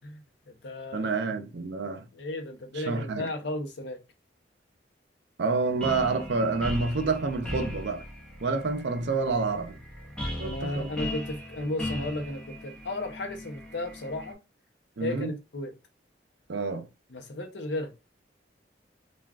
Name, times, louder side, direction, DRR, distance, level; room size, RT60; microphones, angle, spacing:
voice 1, 0.0-1.1 2.1-4.0 10.4-14.4 15.0-15.7 17.1-18.0, left 2 dB, 75° left, 0.7 m, -34 dB
voice 2, 0.9-2.1 2.8-3.3 5.4-8.0 8.4-9.8 10.4-10.9 15.0-15.3 16.5-16.9, right 4 dB, 70° right, 0.5 m, -28 dB
sound 1, 5.6-14.3, left 1 dB, 5° left, 0.6 m, -38 dB
3.4 x 2.3 x 2.3 m
head